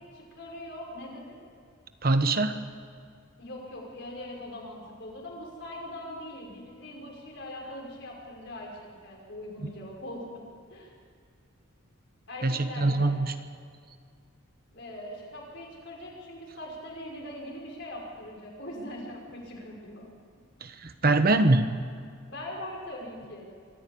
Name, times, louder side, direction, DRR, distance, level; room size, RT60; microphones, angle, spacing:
voice 1, 0.1-1.4 3.4-10.4 10.7-10.9 12.3-13.1 14.7-20.1 22.3-23.5, left 1 dB, 55° left, -1 dB, 5.6 m, -41 dB
voice 2, 2.0-2.6 9.6-9.7 12.4-13.3 20.6-21.7, right 2 dB, 45° right, 9 dB, 1.0 m, -23 dB
24.5 x 14.0 x 8.5 m, 2.2 s
head